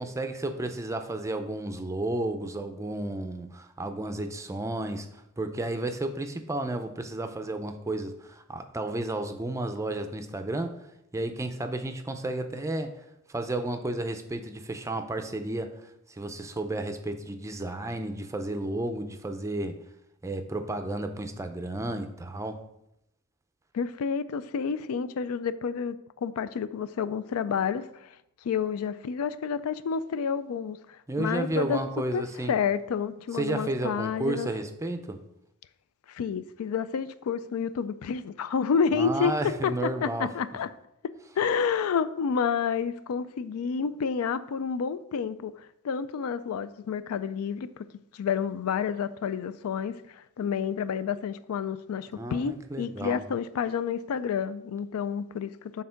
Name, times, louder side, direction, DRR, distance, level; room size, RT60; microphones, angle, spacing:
voice 1, 0.0-10.8 11.1-19.8 20.2-22.6 31.1-32.6 33.3-35.2 38.9-40.3 52.1-53.2, right 2 dB, 15° right, 0.4 m, -32 dB
voice 2, 23.7-28.1 28.4-31.8 32.1-34.5 36.1-39.3 39.6-39.7 40.0-40.7 41.4-47.8 48.1-55.8, left 6 dB, 75° left, 0.4 m, -29 dB
6.5 x 3.6 x 5.6 m
head